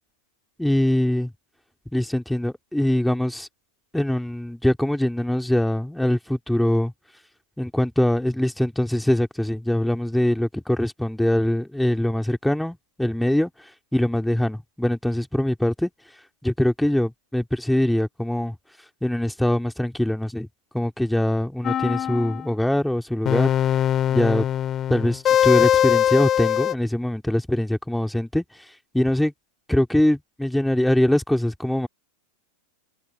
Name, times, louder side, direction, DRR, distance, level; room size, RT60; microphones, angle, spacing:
voice 1, 0.6-1.3 1.9-3.5 3.9-6.9 7.6-13.5 13.9-15.9 16.4-18.5 19.0-20.5 20.7-23.5 24.1-24.5 24.9-28.4 28.9-29.3 29.7-31.9, left 1 dB, ahead, 3.2 m, -23 dB
sound 1, 21.6-22.5 23.3-26.7, left 10 dB, 30° left, 1.9 m, -21 dB
open air
figure-of-eight pair, 90°, 0 cm